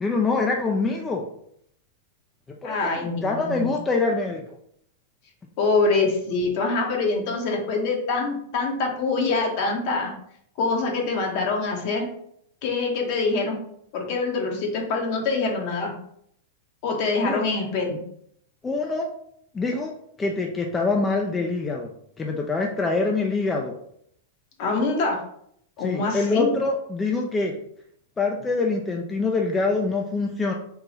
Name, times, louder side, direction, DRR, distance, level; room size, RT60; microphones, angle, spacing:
voice 1, 0.0-1.2 2.6-4.4 17.2-17.4 18.6-19.1 19.5-19.9 20.2-21.9 22.2-23.7 25.8-27.5 28.2-30.5, left 3 dB, 15° left, 0 dB, 0.5 m, -25 dB
voice 2, 2.6-3.8 5.6-10.1 10.6-12.1 12.6-13.6 13.9-15.9 16.8-18.0 24.6-25.2 25.8-26.5, left 3 dB, 50° left, 1 dB, 1.2 m, -25 dB
3.8 x 2.8 x 4.2 m, 0.70 s
hypercardioid pair, 110°, 0 cm